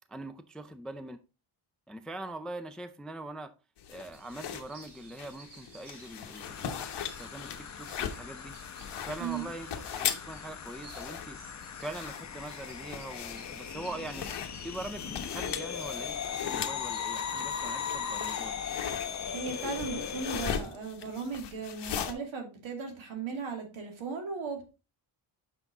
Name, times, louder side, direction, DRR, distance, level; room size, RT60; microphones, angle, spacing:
voice 1, 0.1-1.2 1.9-3.5 3.9-8.5 9.0-9.7 9.9-11.4 11.8-14.3 14.6-18.6, right 2 dB, ahead, 0.3 m, -42 dB
sound 1, 3.8-22.1, left 8 dB, 60° left, 1.0 m, -39 dB
sound 2, 4.1-20.1, right 3 dB, 60° right, 2.9 m, -57 dB
sound 3, 6.4-20.5, left 7 dB, 35° left, 0.7 m, -38 dB
voice 2, 19.3-24.7, right 5 dB, 80° right, 2.3 m, -37 dB
6.0 x 5.9 x 3.8 m
wide cardioid pair, 140°, 46 cm